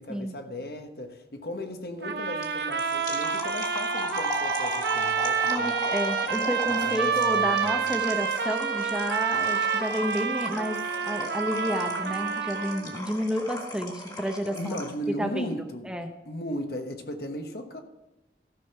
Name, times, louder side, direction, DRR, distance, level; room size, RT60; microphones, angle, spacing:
voice 1, 0.0-5.7 6.8-7.9 14.5-15.9 16.2-17.8, equal, 60° left, 1.2 m, -36 dB
sound 1, 2.0-13.0, right 6 dB, 65° right, 0.9 m, -28 dB
sound 2, 2.4-15.0, left 1 dB, 25° left, 1.7 m, -37 dB
voice 2, 5.5-14.8 15.2-15.5 15.8-16.1, equal, 5° right, 0.7 m, -31 dB
14.0 x 6.4 x 5.5 m
head